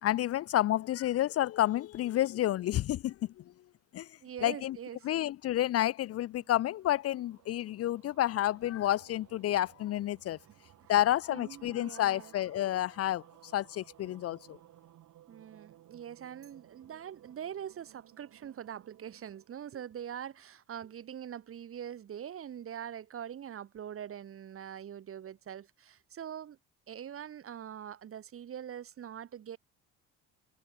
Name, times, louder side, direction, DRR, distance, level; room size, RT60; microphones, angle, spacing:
voice 1, 0.0-3.4 3.9-4.1 4.4-4.8 5.0-10.4 10.9-14.6, left 13 dB, 50° left, 0.5 m, -30 dB
voice 2, 4.2-5.0 11.3-12.3 15.3-26.6 26.9-29.6, right 9 dB, 45° right, 1.3 m, -43 dB
sound 1, 6.0-20.5, right 13 dB, 65° right, 6.2 m, -60 dB
supercardioid pair, 80°, 32 cm